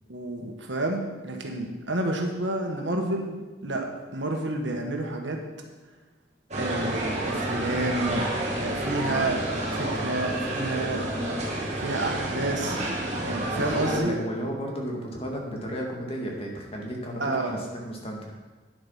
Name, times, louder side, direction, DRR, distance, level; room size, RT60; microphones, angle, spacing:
voice 1, 0.1-5.4 6.5-8.3 8.6-9.4 9.7-11.0 11.8-12.8 13.2-14.2 17.2-17.6, right 2 dB, 80° right, 2 dB, 1.6 m, -29 dB
sound 1, 6.5-14.0, right 1 dB, 40° right, 2.0 m, -29 dB
voice 2, 13.5-18.4, equal, 30° left, 0 dB, 2.0 m, -33 dB
10.0 x 7.9 x 5.6 m, 1.3 s
head